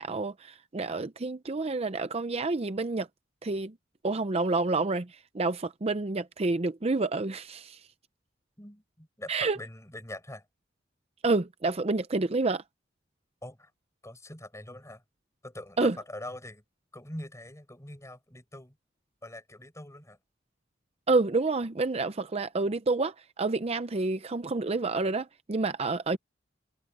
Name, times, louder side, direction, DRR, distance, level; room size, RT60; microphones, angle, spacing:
voice 1, 0.0-3.1 3.4-3.7 4.0-7.8 9.3-9.6 11.2-12.6 15.8-15.9 21.1-26.2, right 3 dB, 35° right, 0.6 m, -28 dB
voice 2, 8.6-10.4 13.4-13.7 14.0-15.0 15.4-16.6 16.9-18.8 19.2-20.2, left 1 dB, 15° left, 6.1 m, -43 dB
head